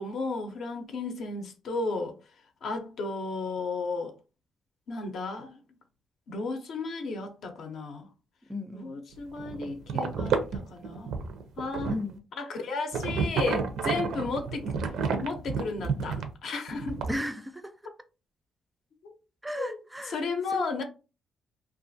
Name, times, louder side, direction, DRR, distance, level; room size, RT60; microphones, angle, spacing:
voice 1, 0.0-2.2 2.6-4.1 4.9-5.6 6.3-8.1 8.7-11.2 11.6-11.9 12.4-14.7 15.2-17.0 19.0-19.1 19.6-19.8 20.1-20.8, left 3 dB, 65° left, 0.6 m, -34 dB
voice 2, 8.5-9.0 11.9-12.2 17.1-17.8 19.4-20.2 20.5-20.8, left 1 dB, 10° right, 0.4 m, -35 dB
sound 1, 9.1-12.1 12.9-16.3 16.7-17.2, right 5 dB, 75° right, 0.4 m, -30 dB
2.4 x 2.4 x 2.6 m
cardioid pair, 90°, 0 cm